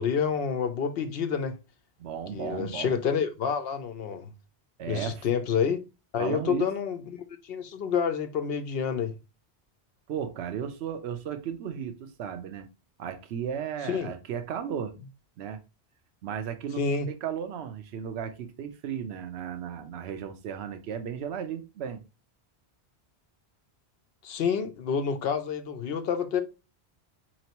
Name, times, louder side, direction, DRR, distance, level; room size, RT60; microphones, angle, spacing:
voice 1, 0.0-1.6 2.3-4.3 4.9-5.8 6.1-9.1 13.8-14.1 16.8-17.1 24.2-26.4, left 6 dB, 65° left, 0.8 m, -28 dB
voice 2, 2.0-3.0 4.8-5.2 6.2-6.7 10.1-12.7 13.0-14.9 15.4-15.6 16.2-16.8 17.1-22.0, right 8 dB, 75° right, 0.9 m, -35 dB
4.2 x 3.0 x 2.8 m
omnidirectional pair, 1.1 m